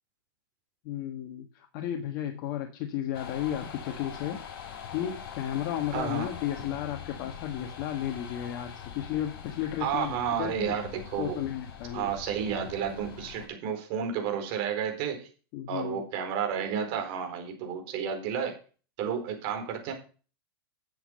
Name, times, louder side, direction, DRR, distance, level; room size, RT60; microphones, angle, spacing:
voice 1, 0.8-4.4 4.9-10.8 11.2-12.1 15.5-16.0, left 11 dB, 45° left, 3 dB, 1.7 m, -33 dB
sound 1, 3.1-13.5, left 8 dB, 65° left, 5.9 m, -43 dB
voice 2, 5.9-6.3 9.8-11.4 11.9-15.3 15.7-18.5 19.0-19.9, right 7 dB, 45° right, 4 dB, 4.3 m, -31 dB
11.5 x 7.7 x 5.3 m, 0.36 s
hypercardioid pair, 135°, 13 cm